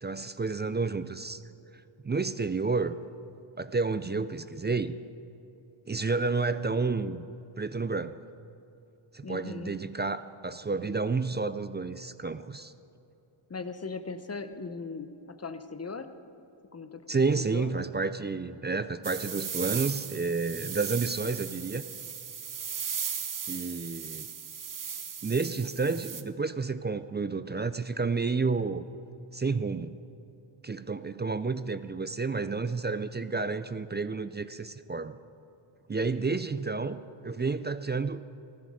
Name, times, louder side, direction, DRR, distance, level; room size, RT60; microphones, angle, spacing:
voice 1, 0.0-1.4 2.0-3.0 3.6-5.0 5.9-7.3 7.6-8.2 9.1-12.7 17.1-21.8 23.5-24.3 25.2-28.9 29.3-29.9 30.6-35.2 35.9-38.2, right 4 dB, 25° right, 13 dB, 0.3 m, -30 dB
voice 2, 9.2-9.7 13.5-16.1 16.7-17.0 17.3-17.7 36.0-36.3, left 4 dB, 30° left, 10 dB, 0.8 m, -39 dB
sound 1, 19.0-26.2, right 7 dB, 40° right, 0.8 m, -37 dB
16.0 x 14.5 x 4.9 m, 2.9 s
wide cardioid pair, 105°, 50 cm